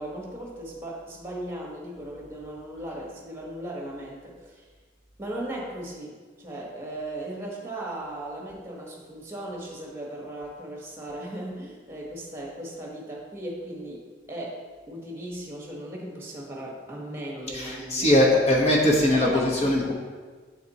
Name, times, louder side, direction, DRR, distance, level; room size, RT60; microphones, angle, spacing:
voice 1, 0.0-4.7 5.2-18.2 19.1-19.9, right 1 dB, 15° right, -2 dB, 1.2 m, -37 dB
voice 2, 17.5-19.9, left 1 dB, 35° left, -1 dB, 1.0 m, -21 dB
7.6 x 4.2 x 4.1 m, 1.4 s
head